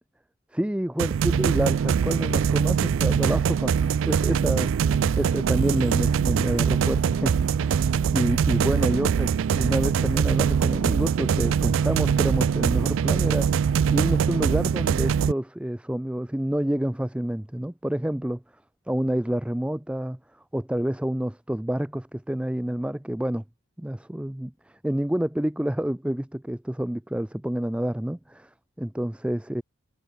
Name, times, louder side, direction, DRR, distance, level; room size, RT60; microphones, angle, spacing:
voice 1, 0.5-4.7 5.2-7.8 8.1-13.6 13.9-18.4 18.9-20.2 20.5-23.4 23.8-28.5 28.8-29.6, right 1 dB, 5° right, 0.4 m, -28 dB
sound 1, 1.0-15.3, right 7 dB, 70° right, 0.3 m, -23 dB
head